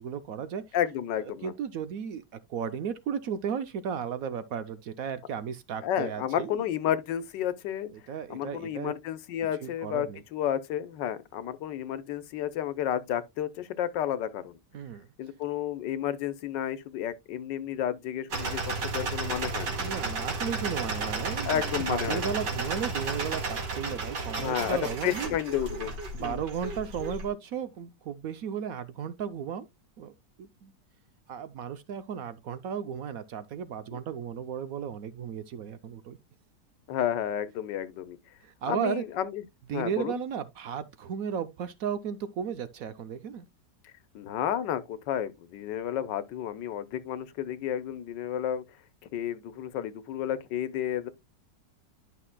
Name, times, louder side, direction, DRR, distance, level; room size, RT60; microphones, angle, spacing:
voice 1, 0.0-0.6 1.2-2.2 2.5-7.0 7.9-8.9 9.6-10.2 14.7-15.1 19.8-25.4 26.1-29.7 30.0-30.1 30.4-30.7 31.3-36.2 38.4-39.0 39.7-43.5, right 7 dB, 65° right, 1.0 m, -35 dB
voice 2, 0.7-1.5 5.8-7.9 8.3-14.6 15.2-19.8 21.4-22.3 24.3-25.9 26.2-26.4 36.9-38.2 38.7-39.4 39.7-40.2 44.1-48.6 49.1-51.1, left 10 dB, 90° left, 1.5 m, -31 dB
sound 1, 18.3-27.3, right 3 dB, 85° right, 2.5 m, -33 dB
11.0 x 5.7 x 2.2 m
omnidirectional pair, 1.9 m